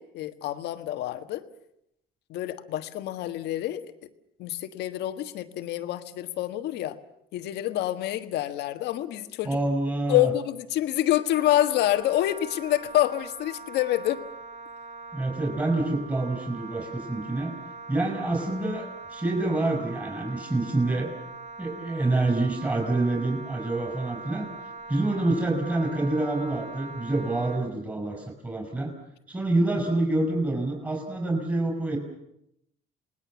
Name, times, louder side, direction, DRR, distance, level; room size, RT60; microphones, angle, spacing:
voice 1, 0.0-1.5 2.3-3.9 4.4-7.0 7.3-9.6 10.1-14.2, left 13 dB, 80° left, 9 dB, 1.5 m, -27 dB
voice 2, 9.4-10.3 15.1-17.5 17.9-21.1 21.6-24.5 24.9-28.9 29.3-32.0, right 2 dB, 15° right, 0 dB, 5.1 m, -27 dB
Wind instrument woodwind instrument, 11.3-27.6, right 3 dB, 45° right, 4.2 m, -42 dB
28.0 x 19.5 x 7.2 m, 0.78 s
cardioid pair, 110°, 17 cm